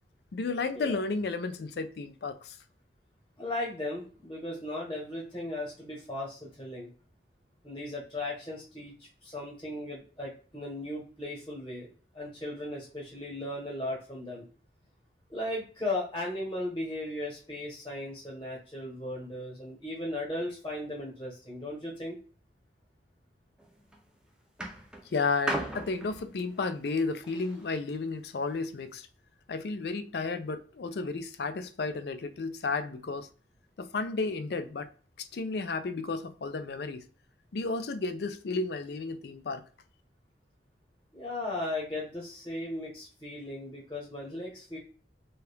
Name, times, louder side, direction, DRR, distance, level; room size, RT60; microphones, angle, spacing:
voice 1, 0.3-2.6 25.1-29.1 29.5-33.3 33.8-34.9 35.2-37.0 37.5-39.6, left 3 dB, 65° left, 0.4 m, -33 dB
voice 2, 3.4-6.9 7.6-11.9 12.1-14.4 15.3-22.2 41.1-44.8, left 1 dB, 20° left, 1.0 m, -37 dB
sound 1, 23.6-24.0 24.6-27.8 28.6-28.7, right 1 dB, 5° right, 0.5 m, -37 dB
2.7 x 2.4 x 3.3 m
head